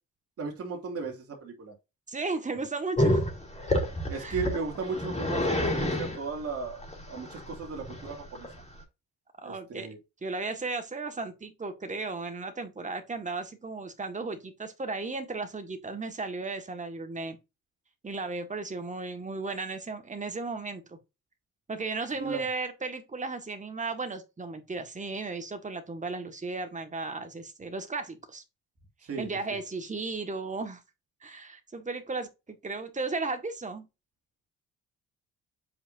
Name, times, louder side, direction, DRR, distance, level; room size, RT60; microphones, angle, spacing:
voice 1, 0.4-1.7 4.1-8.5 9.4-10.0 22.2-22.5 29.0-29.3, right 4 dB, 50° right, 2.6 m, -36 dB
voice 2, 2.1-3.2 4.2-4.4 9.4-9.9 10.2-17.4 18.0-21.0 21.7-28.4 29.2-30.8 31.2-33.9, right 3 dB, 25° right, 1.7 m, -35 dB
Growling, 3.0-8.8, left 1 dB, 20° left, 3.0 m, -29 dB
7.8 x 5.2 x 2.7 m
cardioid pair, 90°, 30 cm